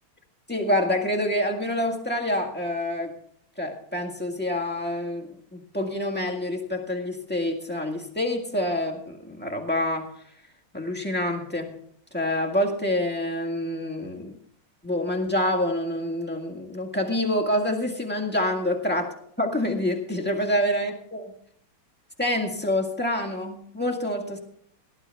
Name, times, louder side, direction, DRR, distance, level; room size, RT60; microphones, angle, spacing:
voice 1, 0.5-3.1 3.6-10.1 10.7-11.8 12.1-14.3 14.8-19.1 19.4-21.3 22.2-24.4, left 1 dB, 5° left, 2 dB, 1.6 m, -27 dB
18.0 x 12.0 x 3.5 m, 0.65 s
omnidirectional pair, 2.4 m